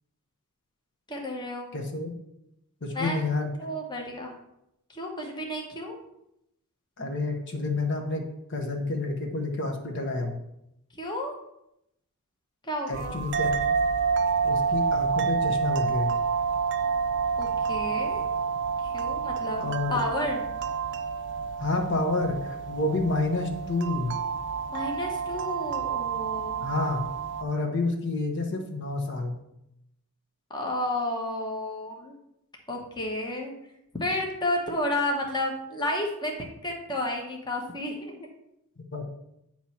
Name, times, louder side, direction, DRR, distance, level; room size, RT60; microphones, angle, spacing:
voice 1, 1.1-1.7 2.9-3.2 3.6-4.3 4.9-6.0 11.0-11.3 12.7-13.2 17.4-18.2 18.8-19.6 19.9-20.5 24.7-26.6 30.5-32.1 32.7-33.5 33.9-36.3 36.6-38.3, left 1 dB, 20° left, 1 dB, 1.0 m, -31 dB
voice 2, 1.7-2.1 2.8-3.5 7.0-8.2 8.5-10.3 12.9-13.5 14.4-16.1 19.6-20.0 21.6-24.1 26.6-27.0 27.4-29.4 38.9-39.0, left 2 dB, 55° left, 2 dB, 1.0 m, -29 dB
sound 1, 12.9-27.4, right 5 dB, 55° right, 0.4 m, -28 dB
8.9 x 3.1 x 5.6 m, 0.82 s
head